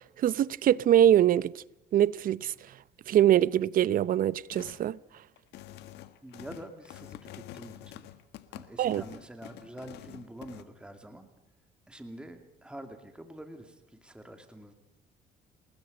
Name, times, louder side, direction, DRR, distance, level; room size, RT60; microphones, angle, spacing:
voice 1, 0.2-1.6 1.9-2.5 3.1-5.0 8.8-9.0, right 11 dB, 55° right, 0.8 m, -23 dB
sound 1, 4.5-4.9 5.4-10.6, left 14 dB, 80° left, 1.6 m, -47 dB
voice 2, 6.2-8.1 8.5-11.3 11.9-14.7, right 1 dB, 5° right, 2.5 m, -46 dB
29.0 x 20.5 x 5.3 m
cardioid pair, 110°, 17 cm